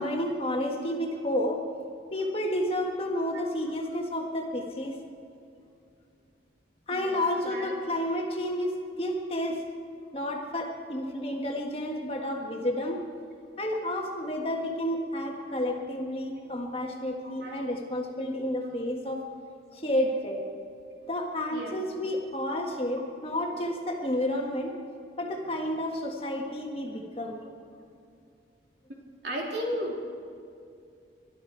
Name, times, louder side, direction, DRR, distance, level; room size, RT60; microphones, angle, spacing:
voice 1, 0.0-1.6 2.1-5.0 6.9-9.6 10.1-13.0 13.6-19.2 19.7-20.4 21.1-24.7 25.2-27.4, left 1 dB, 30° left, 1 dB, 1.6 m, -30 dB
voice 2, 6.9-7.7 16.3-16.4 16.9-17.6 18.0-18.1 21.5-21.8 29.2-30.0, equal, 60° right, -2 dB, 3.4 m, -36 dB
22.0 x 12.5 x 4.7 m, 2.4 s
head